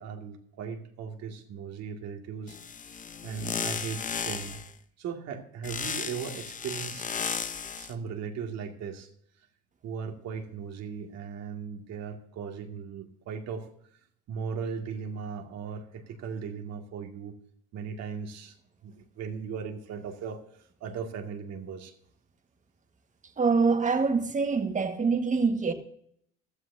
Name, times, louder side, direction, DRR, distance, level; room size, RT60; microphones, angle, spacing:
voice 1, 0.0-2.6 2.9-4.6 5.0-7.1 7.8-9.1 9.8-13.7 14.3-17.3 17.7-18.5 18.8-20.4 20.8-21.9, right 6 dB, 60° right, 2.2 m, -37 dB
sound 1, 2.5-4.7 5.6-7.9, left 6 dB, 25° left, 0.8 m, -34 dB
voice 2, 23.4-25.7, right 4 dB, 25° right, 1.6 m, -25 dB
15.5 x 12.5 x 2.7 m
cardioid pair, 105°, 29 cm